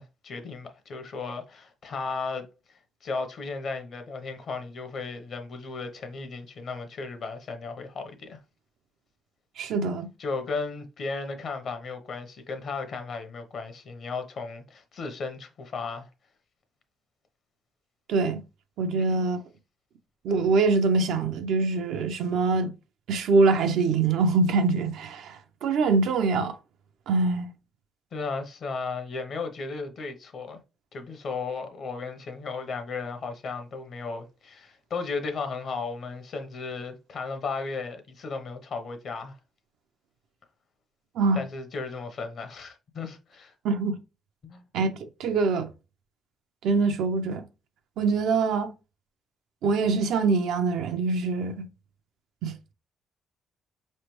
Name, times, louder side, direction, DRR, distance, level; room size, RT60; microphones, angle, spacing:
voice 1, 0.0-2.5 3.0-8.4 9.6-9.7 10.2-16.1 18.9-19.2 28.1-30.6 30.9-39.4 41.3-43.5 44.4-44.7, left 4 dB, 60° left, 0.9 m, -35 dB
voice 2, 9.6-10.1 18.1-18.4 18.8-19.4 20.2-22.7 23.1-26.6 27.1-27.5 41.2-41.4 43.6-43.9 44.7-44.9 45.2-45.7 46.6-47.4 48.0-48.7 49.6-51.7 52.4-52.5, right 4 dB, 80° right, 0.6 m, -24 dB
5.0 x 3.2 x 3.1 m
cardioid pair, 90°, 0 cm